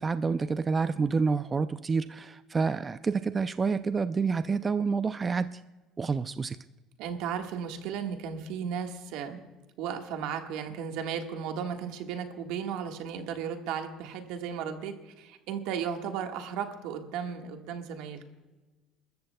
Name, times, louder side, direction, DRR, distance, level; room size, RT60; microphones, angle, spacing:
voice 1, 0.0-5.6 6.0-6.6, right 5 dB, 20° right, 12 dB, 0.3 m, -28 dB
voice 2, 7.0-9.4 9.8-18.2, right 7 dB, 80° right, 5 dB, 1.5 m, -35 dB
29.0 x 13.5 x 2.2 m, 1.2 s
cardioid pair, 135°, 0 cm